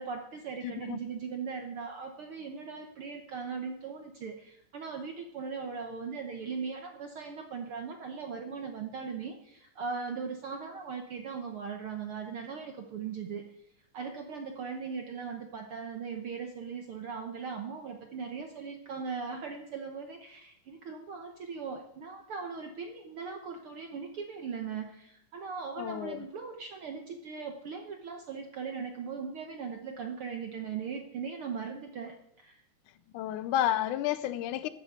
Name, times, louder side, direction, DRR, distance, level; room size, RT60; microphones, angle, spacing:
voice 1, 0.0-13.4 13.9-32.6, right 5 dB, 65° right, 1.4 m, -39 dB
voice 2, 0.6-1.0 25.8-26.2 33.1-34.7, left 12 dB, 80° left, 2.0 m, -31 dB
12.5 x 8.1 x 8.0 m
omnidirectional pair, 3.7 m